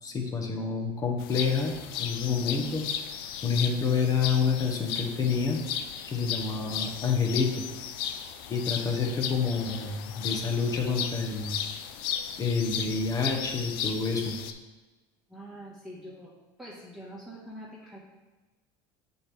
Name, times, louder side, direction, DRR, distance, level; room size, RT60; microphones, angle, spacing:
voice 1, 0.0-1.7 2.0-2.9 3.4-5.6 6.1-7.6 8.5-11.6 12.4-14.4, left 5 dB, 30° left, 3 dB, 1.2 m, -28 dB
sound 1, 1.2-14.5, left 8 dB, 85° left, 0.5 m, -35 dB
voice 2, 15.3-16.3 16.6-18.0, equal, 5° right, -7 dB, 1.6 m, -44 dB
8.2 x 4.5 x 3.5 m, 1.2 s
supercardioid pair, 115°, 12 cm